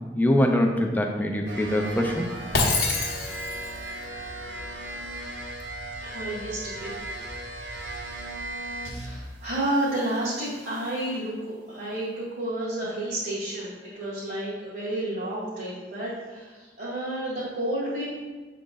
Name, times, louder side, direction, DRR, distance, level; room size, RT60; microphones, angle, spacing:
voice 1, 0.1-2.3, left 1 dB, 10° left, 2 dB, 0.5 m, -23 dB
sound 1, 1.5-9.3 9.6-11.1, right 1 dB, 70° right, 1.0 m, -37 dB
Shatter, 2.5-3.8, left 3 dB, 55° left, 0.9 m, -25 dB
voice 2, 6.0-7.0 7.6-8.0 8.9-18.2, right 1 dB, 55° right, -10 dB, 1.9 m, -31 dB
7.3 x 3.7 x 3.9 m, 1.3 s
head